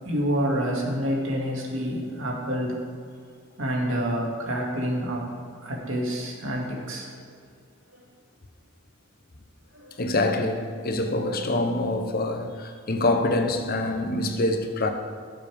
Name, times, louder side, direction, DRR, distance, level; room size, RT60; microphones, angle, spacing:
voice 1, 0.0-2.8 3.6-5.2 5.6-7.2 9.7-10.0, equal, 80° right, 2.4 m, -28 dB
voice 2, 10.0-14.9, left 2 dB, 50° left, 1.0 m, -25 dB
17.5 x 7.4 x 3.6 m
head